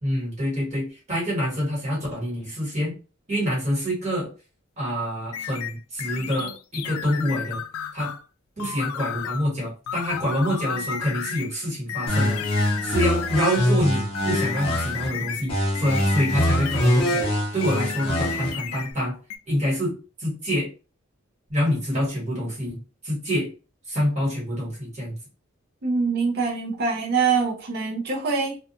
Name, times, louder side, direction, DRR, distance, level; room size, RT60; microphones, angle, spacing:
voice 1, 0.0-2.9 3.3-4.3 4.8-7.6 7.9-8.1 8.6-12.4 12.8-17.3 17.5-19.2 19.5-19.9 20.2-20.7 21.5-23.5 23.9-25.2, equal, 35° right, 1.4 m, -26 dB
sound 1, 5.3-8.2 8.6-9.5 9.9-11.5 11.9-13.8 14.1-17.3 17.6-18.9 19.3-19.4, left 8 dB, 90° left, 0.3 m, -33 dB
sound 2, 12.1-15.1 15.5-18.5, equal, 30° left, 0.9 m, -24 dB
voice 2, 25.8-28.6, right 5 dB, 50° right, 0.5 m, -24 dB
2.4 x 2.3 x 2.7 m
head